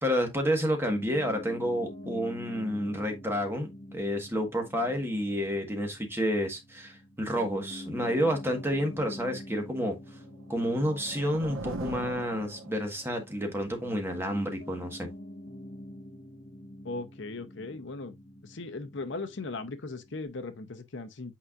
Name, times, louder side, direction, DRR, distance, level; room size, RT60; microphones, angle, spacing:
voice 1, 0.0-10.0 10.5-15.1, equal, 10° right, 1.4 m, -30 dB
Piano, 0.9-20.3, left 1 dB, 40° left, 1.3 m, -46 dB
sound 1, 10.3-13.2, right 2 dB, 75° right, 1.2 m, -40 dB
voice 2, 16.8-18.2 18.4-21.4, left 3 dB, 60° left, 0.8 m, -38 dB
8.6 x 4.6 x 2.5 m
head